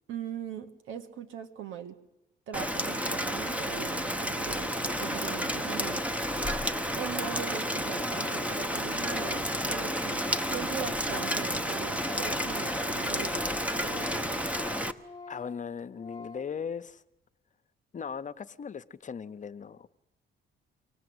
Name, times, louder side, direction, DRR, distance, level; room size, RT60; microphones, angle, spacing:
voice 1, 0.1-2.0 2.5-6.0 6.9-14.3, right 9 dB, 85° right, 1.7 m, -41 dB
Rain, 2.5-14.9, equal, 5° right, 1.0 m, -31 dB
Organ, 6.4-6.8 7.1-10.7 10.9-16.6, left 3 dB, 15° left, 1.2 m, -46 dB
voice 2, 15.3-17.0 17.9-19.9, left 6 dB, 40° left, 0.8 m, -38 dB
25.0 x 17.5 x 8.0 m
cardioid pair, 90°, 20 cm